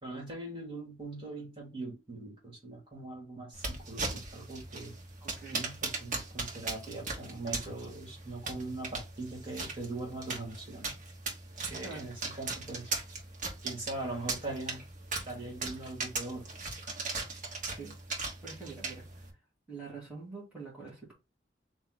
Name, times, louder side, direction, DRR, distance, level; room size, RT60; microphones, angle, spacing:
voice 1, 0.0-4.9 5.5-10.9 11.7-12.9 13.6-14.8 15.2-16.5, right 2 dB, 30° right, 2.5 m, -41 dB
sound 1, 3.5-19.3, right 3 dB, 45° right, 1.5 m, -39 dB
voice 2, 5.2-5.6 11.7-12.0 17.6-17.9 18.4-19.3 19.7-21.1, right 4 dB, 5° right, 2.3 m, -45 dB
4.2 x 3.0 x 4.0 m
head